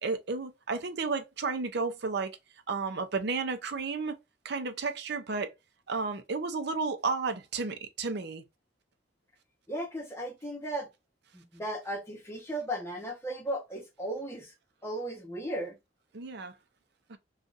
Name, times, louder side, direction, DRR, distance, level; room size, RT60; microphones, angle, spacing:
voice 1, 0.0-2.3 2.7-4.2 4.4-5.5 5.9-8.4 16.1-16.5 17.1-17.2, right 4 dB, 60° right, 0.6 m, -32 dB
voice 2, 9.7-10.9 11.3-14.5 14.8-15.8, right 1 dB, 15° left, 1.0 m, -36 dB
2.6 x 2.4 x 3.9 m
head